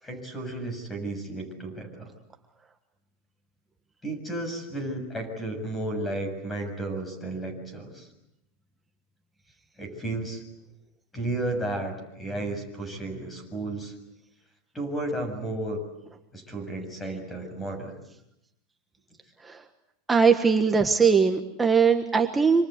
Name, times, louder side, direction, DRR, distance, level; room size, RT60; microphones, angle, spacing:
voice 1, 0.0-2.1 4.0-8.1 9.8-10.4 11.1-13.9 14.7-15.8 16.3-17.9, right 2 dB, 10° left, 7 dB, 7.0 m, -33 dB
voice 2, 20.1-22.7, right 5 dB, 10° right, 5 dB, 1.4 m, -20 dB
27.0 x 26.0 x 8.1 m, 0.85 s
supercardioid pair, 150°, 0 cm